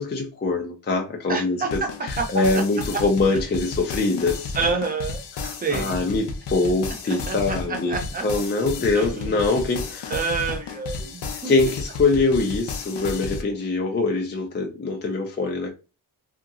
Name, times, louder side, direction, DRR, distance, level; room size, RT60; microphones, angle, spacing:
voice 1, 0.0-1.6 2.0-4.5 5.3-8.0 8.2-10.2 11.4-15.7, left 3 dB, 30° left, 0.4 m, -23 dB
voice 2, 1.3-1.7 2.2-2.3 4.5-6.0 7.1-7.4 7.7-8.3 8.9-9.3 10.1-11.5, right 4 dB, 20° right, 0.6 m, -28 dB
sound 1, 1.7-13.4, left 4 dB, 85° left, 0.6 m, -33 dB
2.8 x 2.7 x 2.4 m
wide cardioid pair, 180°, 40 cm